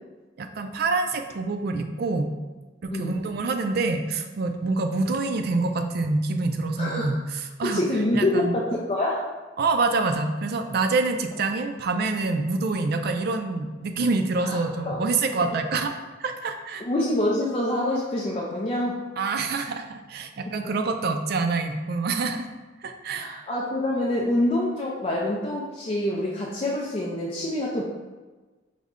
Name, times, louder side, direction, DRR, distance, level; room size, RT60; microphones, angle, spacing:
voice 1, 0.4-2.3 2.9-7.8 8.1-8.6 9.6-16.9 19.2-22.5 22.8-23.3, right 3 dB, 55° right, 6 dB, 0.4 m, -26 dB
voice 2, 6.8-7.1 7.6-9.2 14.4-15.0 16.8-19.0 20.5-20.6 23.1-27.8, left 1 dB, 30° left, -4 dB, 0.4 m, -26 dB
4.8 x 2.1 x 3.6 m, 1.3 s
head